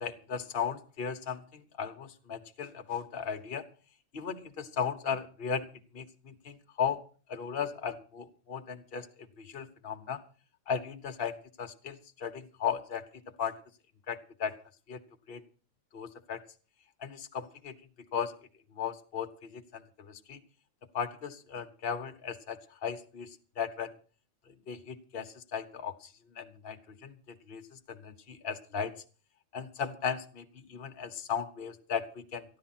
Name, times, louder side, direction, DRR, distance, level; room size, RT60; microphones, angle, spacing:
voice 1, 0.0-3.6 4.1-5.6 5.9-7.0 7.3-9.1 9.4-10.2 10.7-13.0 13.4-13.5 14.1-14.5 14.9-15.0 15.3-15.4 15.9-16.4 17.0-17.7 18.1-18.3 18.8-19.8 20.1-20.4 20.9-23.9 24.7-26.8 27.0-27.6 27.9-28.9 29.5-32.4, left 7 dB, 45° left, 5 dB, 1.2 m, -36 dB
14.0 x 11.0 x 5.9 m, 0.38 s
omnidirectional pair, 1.4 m